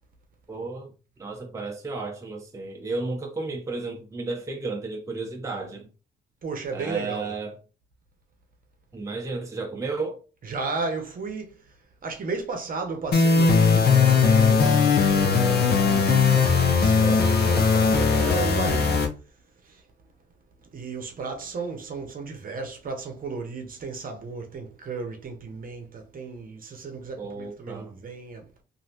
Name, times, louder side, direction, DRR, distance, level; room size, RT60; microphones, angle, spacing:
voice 1, 0.5-0.9 1.2-5.9 6.7-7.6 8.9-10.2 27.2-27.9, right 3 dB, 15° right, 0.6 m, -33 dB
voice 2, 6.4-7.3 10.4-11.6 12.0-19.0 19.6-19.8 20.7-28.6, right 4 dB, 45° right, 0.9 m, -34 dB
sound 1, 13.1-19.1, left 5 dB, 50° left, 0.7 m, -19 dB
3.1 x 2.6 x 2.8 m
cardioid pair, 90°, 20 cm